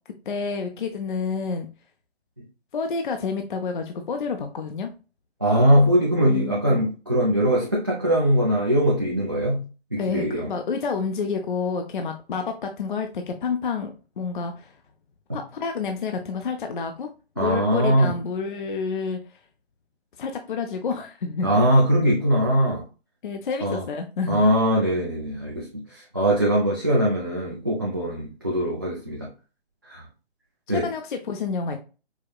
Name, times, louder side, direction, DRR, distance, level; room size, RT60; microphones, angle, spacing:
voice 1, 0.3-1.7 2.7-4.9 6.2-6.8 10.0-14.7 15.3-17.1 17.4-19.2 20.2-21.6 23.2-24.5 30.7-31.8, left 5 dB, 50° left, 0.4 m, -29 dB
voice 2, 5.4-9.6 9.9-10.5 17.4-18.1 21.4-22.8 23.6-23.8 24.3-25.7 25.9-29.3 29.9-30.0 30.7-30.9, equal, 20° right, 0.3 m, -21 dB
4.7 x 2.1 x 2.3 m
figure-of-eight pair, 150°, 32 cm